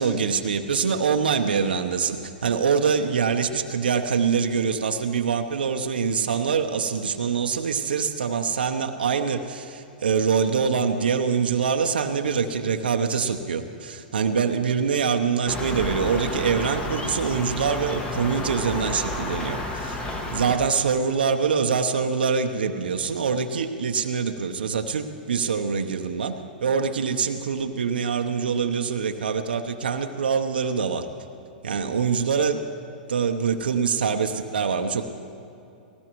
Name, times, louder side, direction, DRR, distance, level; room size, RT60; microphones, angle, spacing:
voice 1, 0.0-20.0 20.3-26.3 26.6-31.1 31.6-32.7 33.1-35.0, right 6 dB, 85° right, 5 dB, 0.8 m, -24 dB
sound 1, 15.5-20.6, left 1 dB, 20° left, 1.7 m, -31 dB
18.5 x 18.0 x 3.1 m, 2.7 s
hypercardioid pair, 115°, 5 cm